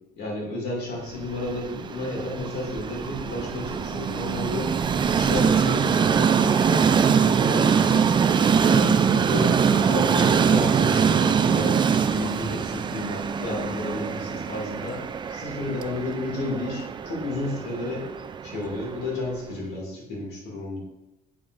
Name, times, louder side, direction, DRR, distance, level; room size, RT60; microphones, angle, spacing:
voice 1, 0.2-4.7 5.1-8.1 8.6-18.1 18.4-20.8, left 2 dB, 75° left, -2 dB, 2.3 m, -32 dB
Train, 1.2-19.3, right 6 dB, 25° right, 0.3 m, -23 dB
7.2 x 6.3 x 2.5 m, 0.97 s
cardioid pair, 110°, 17 cm